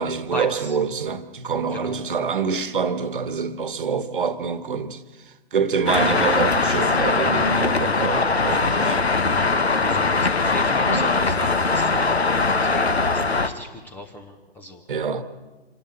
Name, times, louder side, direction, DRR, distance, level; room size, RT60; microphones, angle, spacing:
voice 1, 0.0-9.0 10.8-11.1 14.9-15.2, right 5 dB, 55° right, 1.3 m, -26 dB
Traffic noise roadway noise, 5.9-13.5, left 3 dB, 75° left, 1.4 m, -21 dB
voice 2, 9.7-14.8, left 1 dB, 5° left, 0.7 m, -36 dB
26.0 x 11.5 x 9.0 m
figure-of-eight pair, 130°, 32 cm